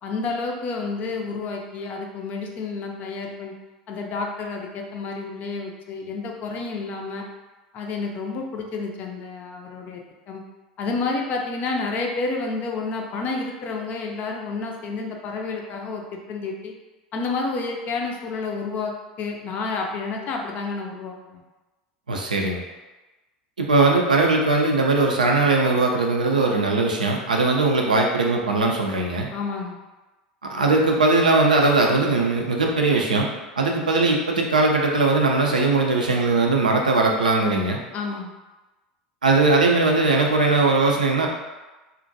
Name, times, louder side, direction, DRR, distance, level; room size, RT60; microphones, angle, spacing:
voice 1, 0.0-3.5 3.9-7.3 7.7-10.0 10.3-10.4 10.8-16.7 17.1-21.4 29.3-29.8 37.9-38.3, left 3 dB, 40° left, 1 dB, 0.4 m, -30 dB
voice 2, 22.1-22.6 23.6-29.3 30.4-33.3 33.6-37.8 39.2-41.3, right 3 dB, 85° right, 0 dB, 0.4 m, -20 dB
2.4 x 2.1 x 2.6 m, 1.2 s
figure-of-eight pair, 80°, 4 cm